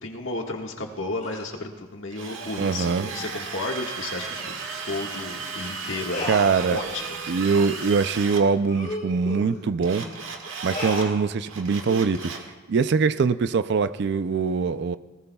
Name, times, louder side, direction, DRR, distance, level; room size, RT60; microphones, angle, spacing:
voice 1, 0.0-4.6 4.8-6.2 6.7-7.2, left 2 dB, 65° left, 1 dB, 1.6 m, -32 dB
sound 1, 1.2-1.5 2.4-2.6 3.0-3.3 4.3-4.5 4.8-5.0 5.3-5.5 6.1-7.1 7.4-7.6 8.0-8.1 8.6-10.1 10.7-11.2 11.8-12.2, left 2 dB, 40° left, 5.7 m, -35 dB
Drill, 2.1-8.4 9.8-11.1 11.5-12.5, right 5 dB, 70° right, 1.7 m, -35 dB
voice 2, 2.6-3.1 6.3-6.8 7.3-10.1 10.6-12.3 12.7-15.0, right 5 dB, 55° right, 13 dB, 0.4 m, -23 dB
19.5 x 19.0 x 2.3 m, 1.3 s
head